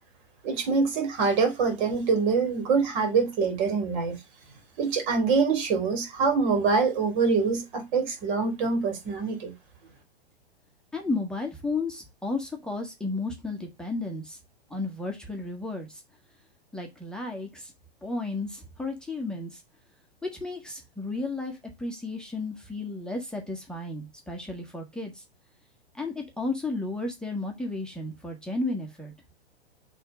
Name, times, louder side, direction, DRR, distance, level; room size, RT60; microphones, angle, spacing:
voice 1, 0.4-4.2 4.8-9.5, right 5 dB, 45° right, 3.4 m, -25 dB
voice 2, 10.9-14.4 14.7-16.0 16.7-17.7 18.0-19.6 20.2-25.2 25.9-29.1, left 2 dB, ahead, 1.3 m, -33 dB
6.7 x 3.6 x 5.0 m
hypercardioid pair, 110°, 32 cm